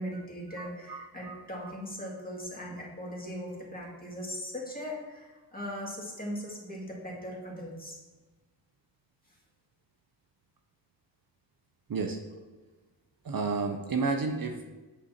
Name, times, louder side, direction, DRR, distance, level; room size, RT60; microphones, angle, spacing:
voice 1, 0.0-8.0, equal, 20° left, -3 dB, 2.2 m, -39 dB
voice 2, 0.6-1.4 11.9-12.2 13.2-14.7, right 4 dB, 50° right, 5 dB, 0.7 m, -32 dB
8.0 x 6.2 x 2.9 m, 1.2 s
cardioid pair, 55°, 44 cm